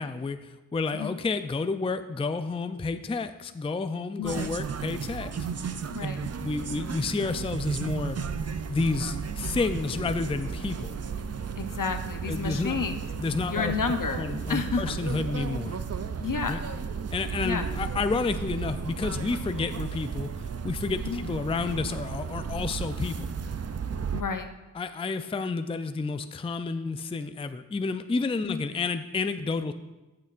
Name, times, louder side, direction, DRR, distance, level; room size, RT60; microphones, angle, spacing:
voice 1, 0.0-5.7 6.2-8.2 8.7-10.9 12.3-12.8 13.1-13.7 14.2-15.8 16.5-16.6 17.1-20.3 20.6-23.3 24.7-29.7, left 4 dB, 15° left, 10 dB, 0.3 m, -30 dB
sound 1, 4.2-24.2, right 6 dB, 50° right, 0.4 m, -34 dB
voice 2, 5.9-6.2 11.6-12.9 13.5-14.8 16.2-16.6 17.4-17.6 21.0-21.2 24.1-24.5 28.4-28.6, left 5 dB, 65° left, 7 dB, 0.7 m, -30 dB
14.0 x 6.7 x 2.5 m, 1.1 s
wide cardioid pair, 50°, 34 cm